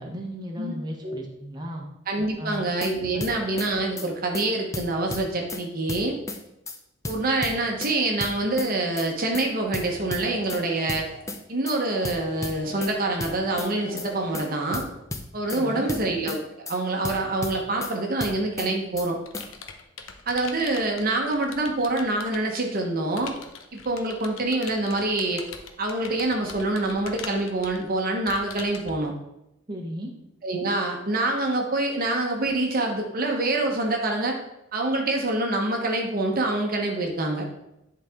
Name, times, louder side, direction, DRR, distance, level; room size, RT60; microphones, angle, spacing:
voice 1, 0.0-1.9 2.4-2.6 3.1-3.2 15.5-15.9 29.7-30.1, equal, 20° right, -1 dB, 1.0 m, -35 dB
voice 2, 2.1-6.2 7.1-11.0 11.5-14.9 15.3-16.4 16.7-19.2 20.3-23.4 23.7-25.4 25.8-29.1 30.4-34.4 34.7-37.5, right 2 dB, 45° right, 2 dB, 1.0 m, -26 dB
sound 1, 2.5-2.9 3.2-3.7 4.0-4.1 4.3-4.5 4.7-5.6 5.9-6.4 6.7-6.8 7.0-7.9 8.2-8.7 9.0-9.1 9.3-9.5 9.7-10.6 10.9-11.4 11.7-11.8 12.0-12.9 13.2-13.7 14.0-14.1 14.3-14.5 14.7-15.6 15.9-16.4 16.7-16.8 17.0-17.9 18.2-18.7 19.0-19.1 19.3-19.5, left 2 dB, 15° left, 0.6 m, -33 dB
sound 2, 9.8-11.3 11.8-13.1 13.7-14.9 15.4-16.0, equal, 60° left, 1.1 m, -43 dB
Computer keyboard, 18.5-22.6 23.2-28.9, left 6 dB, 85° left, 0.8 m, -42 dB
10.5 x 4.0 x 3.6 m, 0.86 s
head